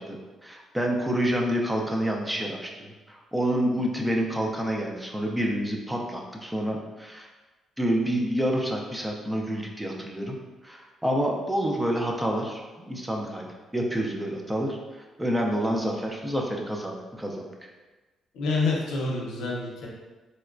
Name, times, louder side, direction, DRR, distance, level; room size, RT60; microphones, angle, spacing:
voice 1, 0.0-2.7 3.1-7.3 7.8-10.4 10.6-17.7, equal, 10° right, 0 dB, 0.5 m, -28 dB
voice 2, 18.3-19.9, left 3 dB, 85° left, -2 dB, 0.7 m, -27 dB
4.1 x 2.2 x 2.4 m, 1.2 s
cardioid pair, 90°, 0 cm